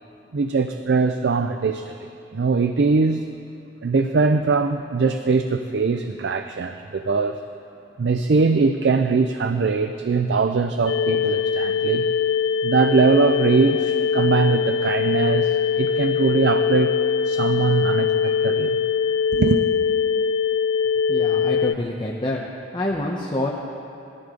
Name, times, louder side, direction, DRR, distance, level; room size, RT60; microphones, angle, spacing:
voice 1, 0.3-2.0 2.3-3.3 3.8-7.4 8.0-12.1 12.6-16.9 17.3-18.8 19.3-19.6, right 4 dB, 65° right, 8 dB, 0.5 m, -21 dB
sound 1, 10.9-21.7, left 7 dB, 90° left, 0.3 m, -22 dB
voice 2, 21.1-22.4 22.7-23.5, left 1 dB, 25° left, -3 dB, 0.9 m, -26 dB
19.0 x 14.0 x 3.8 m, 2.6 s
head